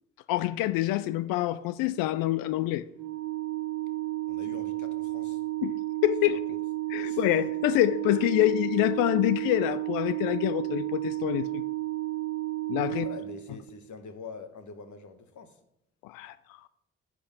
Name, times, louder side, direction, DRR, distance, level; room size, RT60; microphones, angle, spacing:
voice 1, 0.3-2.8 5.6-6.4 6.9-11.6 12.7-13.1 16.0-16.3, left 15 dB, 70° left, 0.5 m, -26 dB
Organ, 2.9-13.8, right 18 dB, 75° right, 1.7 m, -32 dB
voice 2, 4.3-5.4 6.3-6.6 7.0-7.3 12.9-15.6, left 5 dB, 55° left, 1.3 m, -45 dB
10.0 x 6.0 x 5.3 m
hypercardioid pair, 45°, 36 cm